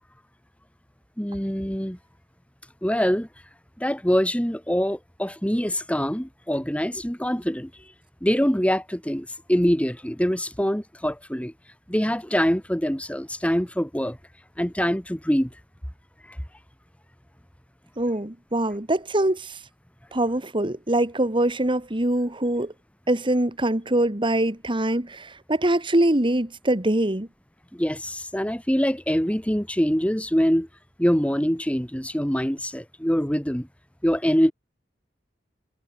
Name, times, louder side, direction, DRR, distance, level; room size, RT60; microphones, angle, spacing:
voice 1, 1.2-2.0 2.8-3.3 3.8-7.7 8.2-11.5 11.9-14.2 14.6-15.5 27.7-30.7 31.0-33.7 34.0-34.5, equal, 10° left, 3.1 m, -24 dB
voice 2, 18.0-19.6 20.1-22.7 23.1-27.3, right 1 dB, 30° right, 1.9 m, -23 dB
head